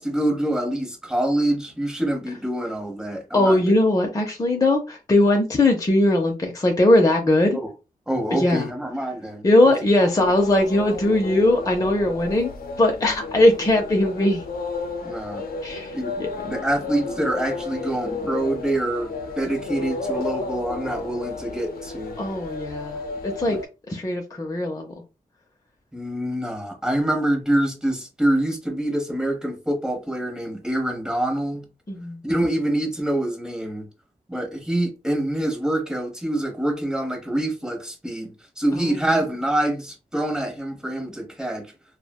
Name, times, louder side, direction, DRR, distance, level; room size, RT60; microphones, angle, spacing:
voice 1, 0.0-3.7 7.5-7.7 8.1-9.4 15.0-15.4 15.9-22.2 23.5-23.6 25.9-31.6 32.2-33.9 34.3-41.7, right 1 dB, 5° right, 0.9 m, -26 dB
voice 2, 3.3-7.6 8.3-8.7 9.4-12.5 12.8-14.4 15.6-16.6 22.2-23.6 23.9-24.9 31.9-32.2 38.7-39.0, left 1 dB, 25° left, 0.5 m, -20 dB
sound 1, 10.2-23.7, left 3 dB, 85° left, 0.5 m, -33 dB
3.2 x 2.1 x 2.3 m
cardioid pair, 80°, 15 cm